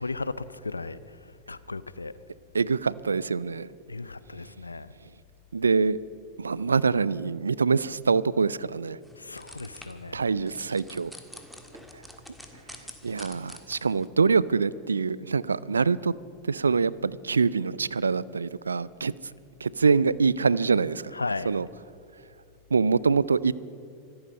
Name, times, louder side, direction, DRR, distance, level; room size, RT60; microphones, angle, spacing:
voice 1, 0.0-2.2 3.9-4.9 9.2-10.2 21.1-21.5, left 3 dB, 90° left, 15 dB, 0.5 m, -35 dB
voice 2, 2.5-3.7 5.5-6.0 6.4-9.0 10.1-11.1 13.0-16.1 16.5-19.1 19.6-21.1 21.5-21.7 22.7-23.5, right 5 dB, 85° right, 21 dB, 0.3 m, -24 dB
sound 1, 9.0-14.1, equal, ahead, 1.7 m, -47 dB
25.5 x 8.8 x 5.4 m, 2.5 s
figure-of-eight pair, 90°, 0 cm